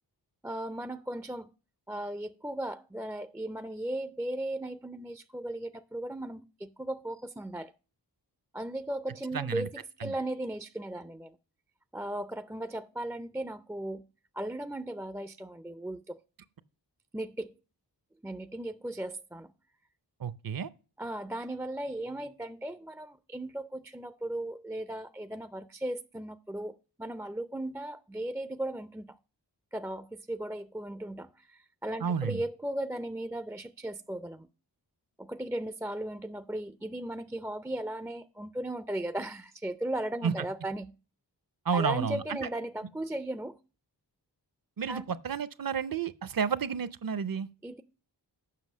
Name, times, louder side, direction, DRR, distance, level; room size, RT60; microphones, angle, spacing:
voice 1, 0.4-1.5 1.9-7.7 8.5-11.4 11.9-14.0 14.3-16.2 17.1-17.5 18.2-19.5 21.0-29.2 29.7-34.5 35.2-40.9 41.7-43.6 44.9-45.1 47.6-47.8, right 1 dB, 5° right, 0.3 m, -37 dB
voice 2, 9.3-9.7 10.0-10.1 20.2-20.7 32.0-32.4 40.2-40.3 41.7-42.5 44.8-47.5, right 6 dB, 55° right, 0.6 m, -31 dB
7.6 x 5.9 x 6.1 m
wide cardioid pair, 85°, 42 cm